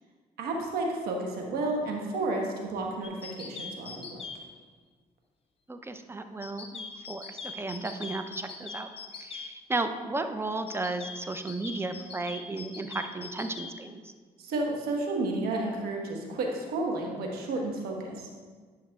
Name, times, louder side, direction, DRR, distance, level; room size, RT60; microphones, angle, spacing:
voice 1, 0.4-4.2 14.4-18.2, right 2 dB, 75° right, 1 dB, 1.3 m, -31 dB
sound 1, 3.0-4.4 6.4-9.5 10.7-13.7, left 5 dB, 40° left, 1.0 m, -41 dB
voice 2, 5.7-8.9 9.1-14.1, right 2 dB, 15° right, 8 dB, 0.6 m, -34 dB
10.0 x 5.9 x 2.4 m, 1.5 s
supercardioid pair, 65°, 16 cm